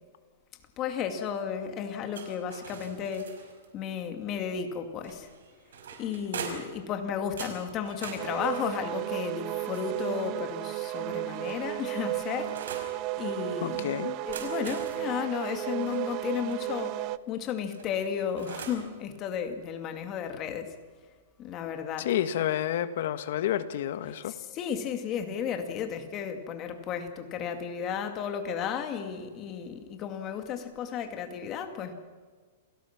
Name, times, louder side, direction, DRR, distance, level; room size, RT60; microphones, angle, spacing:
voice 1, 0.8-3.3 3.7-5.3 6.0-12.9 13.2-13.9 14.3-20.7 21.4-22.1 24.3-31.9, left 7 dB, 30° left, 6 dB, 2.4 m, -34 dB
sound 1, 2.1-3.7 5.0-6.8 7.4-10.3 11.1-12.9 14.1-16.6 17.7-18.9, right 5 dB, 85° right, 5.5 m, -43 dB
sound 2, 8.2-17.2, right 18 dB, 35° right, 0.6 m, -34 dB
voice 2, 13.6-14.2 22.0-24.4, left 11 dB, 60° left, 11 dB, 1.6 m, -29 dB
28.5 x 18.0 x 6.1 m, 1.5 s
hypercardioid pair, 155°, 0 cm